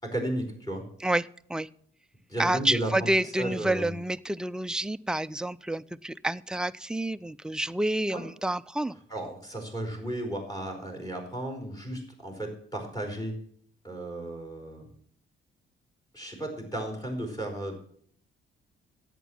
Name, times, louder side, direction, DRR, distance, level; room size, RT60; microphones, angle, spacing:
voice 1, 0.0-0.8 2.3-3.1 3.4-3.9 8.1-8.2 9.1-13.3 13.8-14.9 16.1-17.8, right 1 dB, 20° left, 3 dB, 5.0 m, -34 dB
voice 2, 1.0-1.7 2.4-9.0, right 1 dB, 5° right, 13 dB, 0.4 m, -29 dB
11.0 x 8.3 x 7.3 m, 0.62 s
cardioid pair, 90°, 20 cm